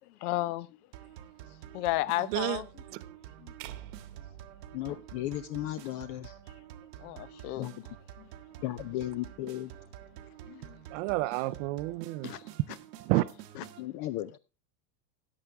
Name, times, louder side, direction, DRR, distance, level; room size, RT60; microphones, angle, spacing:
voice 1, 0.2-0.7 1.7-2.7 3.4-3.5 4.9-5.0 7.0-7.7 8.2-8.3 10.5-10.8 12.2-12.4 13.5-13.6, left 16 dB, 65° left, 0.9 m, -33 dB
sound 1, 0.9-13.9, right 11 dB, 90° right, 1.4 m, -49 dB
sound 2, 3.6-5.9, right 12 dB, 65° right, 1.3 m, -48 dB
voice 2, 4.7-6.4 7.6-7.8 8.6-9.7 13.8-14.4, left 14 dB, 40° left, 0.4 m, -35 dB
voice 3, 10.9-12.3 13.0-13.3, right 19 dB, 45° right, 0.5 m, -29 dB
14.0 x 9.1 x 3.4 m
supercardioid pair, 150°, 48 cm